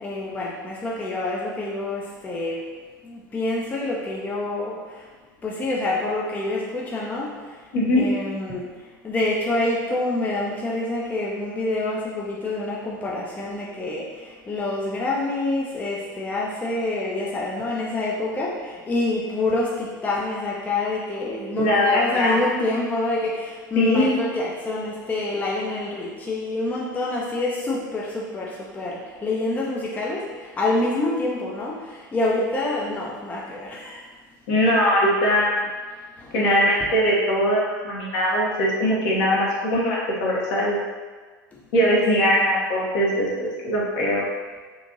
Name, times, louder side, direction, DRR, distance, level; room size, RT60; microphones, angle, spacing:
voice 1, 0.0-2.6 3.0-4.8 5.4-7.3 7.9-8.7 9.0-34.0 36.2-36.3 42.3-42.6, left 2 dB, 15° left, -4 dB, 0.4 m, -27 dB
voice 2, 7.7-8.1 21.5-22.6 23.8-24.1 34.5-35.5 36.3-40.8 41.7-44.2, equal, 55° left, -4 dB, 0.8 m, -21 dB
2.9 x 2.5 x 2.5 m, 1.4 s
figure-of-eight pair, 85°, 11 cm